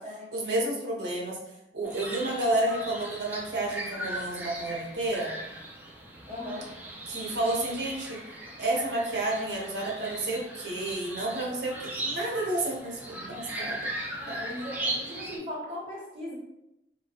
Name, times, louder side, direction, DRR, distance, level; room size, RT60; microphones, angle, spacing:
voice 1, 0.3-1.4 1.7-5.3 7.1-8.2 8.6-13.8 14.3-14.4, right 1 dB, 75° right, -2 dB, 0.7 m, -30 dB
sound 1, 1.8-15.4, right 1 dB, 10° right, 0.3 m, -38 dB
voice 2, 6.3-6.7 14.2-16.3, left 1 dB, 35° right, -8 dB, 1.1 m, -38 dB
2.2 x 2.1 x 2.8 m, 0.86 s
head